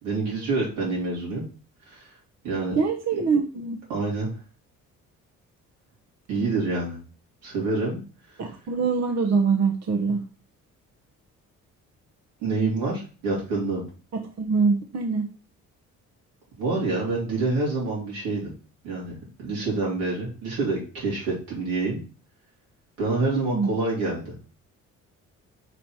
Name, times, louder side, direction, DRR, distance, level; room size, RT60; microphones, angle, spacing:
voice 1, 0.0-1.4 1.9-2.1 2.4-2.7 3.9-4.3 6.3-7.0 7.4-8.0 12.4-13.8 16.6-18.5 18.8-19.1 19.4-22.0 23.0-24.3, right 3 dB, 85° right, -4 dB, 3.2 m, -27 dB
voice 2, 2.7-3.8 8.4-10.2 14.1-15.3 23.3-23.7, right 5 dB, 50° right, 4 dB, 0.9 m, -24 dB
5.2 x 4.0 x 4.4 m, 0.36 s
supercardioid pair, 60°, 35 cm